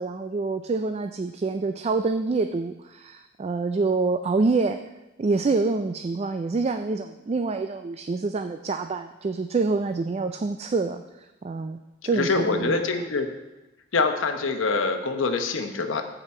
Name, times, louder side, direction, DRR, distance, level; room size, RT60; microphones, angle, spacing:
voice 1, 0.0-4.8 5.2-13.1, right 3 dB, 35° right, 8 dB, 0.3 m, -26 dB
voice 2, 12.1-13.3 13.9-16.0, left 4 dB, 90° left, 5 dB, 0.9 m, -25 dB
14.0 x 5.0 x 4.3 m, 1.1 s
head